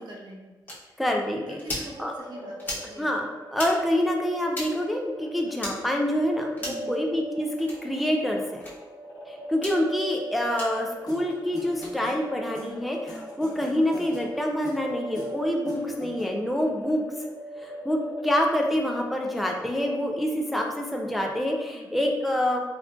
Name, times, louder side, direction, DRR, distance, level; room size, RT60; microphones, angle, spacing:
voice 1, 0.0-1.0 1.5-3.1 6.7-7.0 21.7-22.1, right 1 dB, 65° right, -3 dB, 0.9 m, -44 dB
sound 1, 0.7-0.8 1.6-1.9 2.6-2.9 3.5-3.7 4.5-4.7 5.6-5.7 6.6-6.9 7.6-7.8 8.6-8.7 9.5-9.8 10.6-10.7 11.7-11.9, left 1 dB, 25° left, 1.0 m, -34 dB
voice 2, 1.0-1.6 2.0-2.1 3.0-3.3 3.5-8.6 9.5-17.0 17.6-22.6, left 1 dB, ahead, 1 dB, 0.3 m, -26 dB
sound 2, 2.2-20.6, right 1 dB, 80° left, 1.0 m, -40 dB
sound 3, 11.1-16.6, left 1 dB, 55° left, 0.8 m, -41 dB
3.7 x 2.3 x 2.3 m, 1.2 s
cardioid pair, 120°, 8 cm